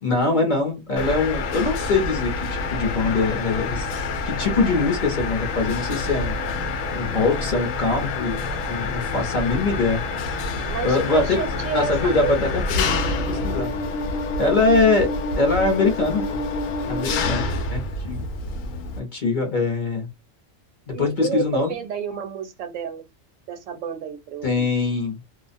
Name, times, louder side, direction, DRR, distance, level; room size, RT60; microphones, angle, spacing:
voice 1, 0.0-3.9 4.3-6.4 6.9-10.0 10.8-11.4 11.7-13.7 14.4-15.1 15.4-16.4 16.9-18.3 19.0-20.1 21.0-21.7 24.4-25.2, left 3 dB, 45° left, 0.8 m, -23 dB
Mechanisms, 1.0-19.0, left 3 dB, 85° left, 1.0 m, -27 dB
voice 2, 10.5-12.4 16.8-17.1 17.4-17.5 20.9-23.0 23.5-24.7, right 7 dB, 75° right, 1.0 m, -31 dB
2.4 x 2.0 x 2.5 m
omnidirectional pair, 1.3 m